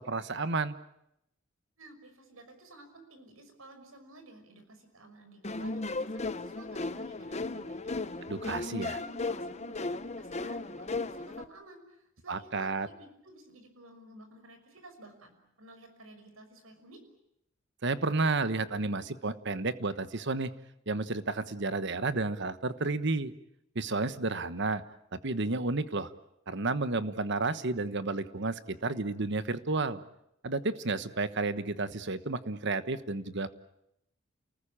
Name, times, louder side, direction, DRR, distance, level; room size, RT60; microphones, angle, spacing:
voice 1, 0.1-0.7 8.3-9.0 12.3-12.9 17.8-20.5 20.9-23.3 23.7-24.8 25.1-26.1 26.5-30.0 30.4-33.5, right 3 dB, 60° right, 13 dB, 1.3 m, -31 dB
voice 2, 1.8-17.0, right 1 dB, 90° right, 7 dB, 6.1 m, -53 dB
sound 1, 5.4-11.4, left 3 dB, 35° left, 1.0 m, -36 dB
29.0 x 20.0 x 8.8 m, 0.81 s
head